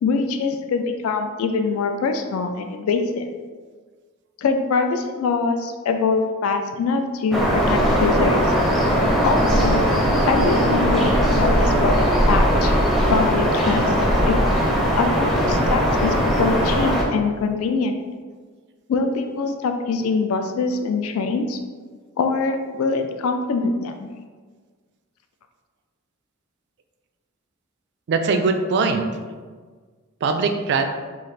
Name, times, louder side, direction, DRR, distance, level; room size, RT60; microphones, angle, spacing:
voice 1, 0.0-3.3 4.4-8.5 9.2-9.8 10.2-12.7 13.1-14.3 14.9-18.0 18.9-21.6 22.2-24.1, left 4 dB, 75° left, 6 dB, 0.3 m, -23 dB
sound 1, 7.3-17.0, equal, ahead, 0.5 m, -19 dB
voice 2, 28.1-29.1 30.2-30.8, right 4 dB, 55° right, 7 dB, 0.3 m, -21 dB
3.1 x 2.4 x 4.0 m, 1.5 s
head